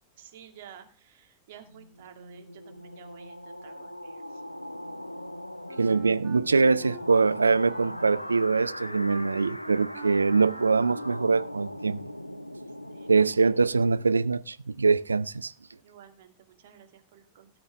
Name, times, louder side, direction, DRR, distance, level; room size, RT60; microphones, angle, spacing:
voice 1, 0.2-4.4 12.9-13.5 15.7-17.5, right 9 dB, 55° right, 2.3 m, -52 dB
sound 1, 1.7-14.3, left 1 dB, 90° left, 0.6 m, -40 dB
Wind instrument woodwind instrument, 5.7-11.4, right 6 dB, 35° right, 5.0 m, -47 dB
voice 2, 5.8-12.0 13.1-15.5, right 4 dB, 75° right, 0.5 m, -23 dB
17.5 x 8.7 x 3.6 m
figure-of-eight pair, 90°, 0 cm